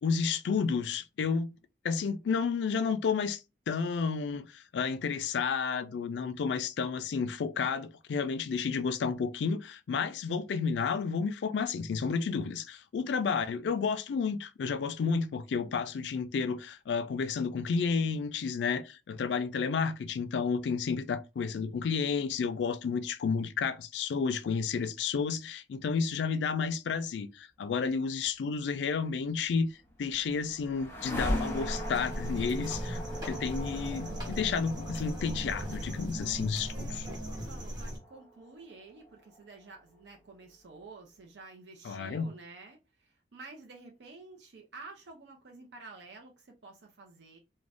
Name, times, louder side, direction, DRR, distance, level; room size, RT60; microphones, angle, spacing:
voice 1, 0.0-1.5 1.8-3.4 3.7-29.7 30.0-37.1 41.8-42.3, left 5 dB, 75° left, 0.3 m, -31 dB
sound 1, 29.6-39.7, equal, 15° left, 0.9 m, -40 dB
sound 2, 31.3-38.0, right 1 dB, 25° right, 1.1 m, -38 dB
voice 2, 36.6-47.4, right 3 dB, 75° right, 0.6 m, -51 dB
2.5 x 2.1 x 3.3 m
head